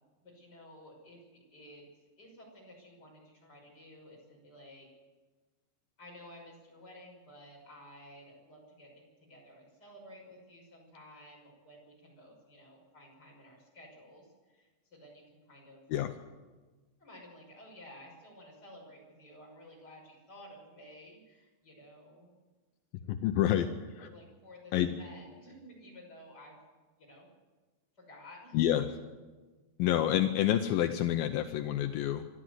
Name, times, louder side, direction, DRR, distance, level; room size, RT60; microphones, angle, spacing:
voice 1, 0.2-1.8 2.2-4.9 6.0-16.0 17.0-22.3 23.4-23.7 24.0-26.5 27.0-27.3 28.0-28.6, left 1 dB, 20° left, -1 dB, 6.2 m, -53 dB
voice 2, 23.1-23.7 24.0-24.1 24.7-24.9 28.5-28.9 29.8-32.3, left 11 dB, 85° left, 7 dB, 2.1 m, -28 dB
26.0 x 12.5 x 7.9 m, 1.3 s
omnidirectional pair, 5.2 m